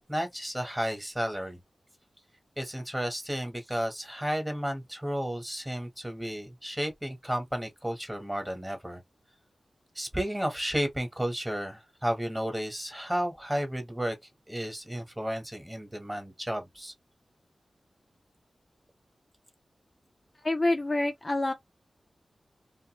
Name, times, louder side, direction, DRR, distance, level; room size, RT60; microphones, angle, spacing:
voice 1, 0.1-1.6 2.6-9.0 9.9-14.2 14.5-16.9, equal, 10° right, 1.2 m, -32 dB
voice 2, 20.4-21.5, left 2 dB, 35° left, 0.5 m, -27 dB
2.5 x 2.3 x 2.9 m
wide cardioid pair, 70°, 0 cm